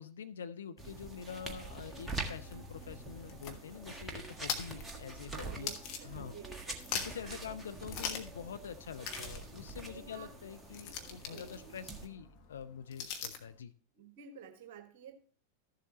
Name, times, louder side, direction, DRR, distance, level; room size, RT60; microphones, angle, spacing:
voice 1, 0.0-5.7 6.0-6.4 6.9-13.7, left 7 dB, 65° left, 11 dB, 0.5 m, -46 dB
sound 1, 0.8-12.1, right 2 dB, 10° right, 1.4 m, -45 dB
sound 2, 3.0-6.5 6.7-7.3 7.9-8.4 8.7-8.8 9.0-13.5, left 7 dB, 40° left, 1.4 m, -42 dB
voice 2, 5.3-6.8 7.2-7.5 9.9-10.3 11.3-11.6 13.9-15.2, right 7 dB, 50° right, 6 dB, 1.3 m, -51 dB
13.5 x 7.5 x 3.0 m, 0.41 s
figure-of-eight pair, 90°, 0 cm